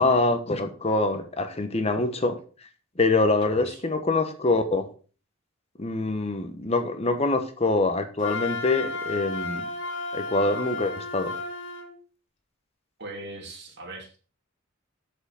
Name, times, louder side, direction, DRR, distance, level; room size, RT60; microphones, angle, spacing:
voice 1, 0.0-2.4 3.0-4.9 5.8-9.7 10.1-11.3, left 2 dB, 30° left, 8 dB, 1.0 m, -24 dB
voice 2, 3.4-3.8 13.0-14.2, right 2 dB, 55° right, 1 dB, 2.8 m, -40 dB
Wind instrument woodwind instrument, 8.2-11.9, left 3 dB, 60° left, 2.5 m, -33 dB
7.9 x 6.6 x 5.6 m, 0.38 s
head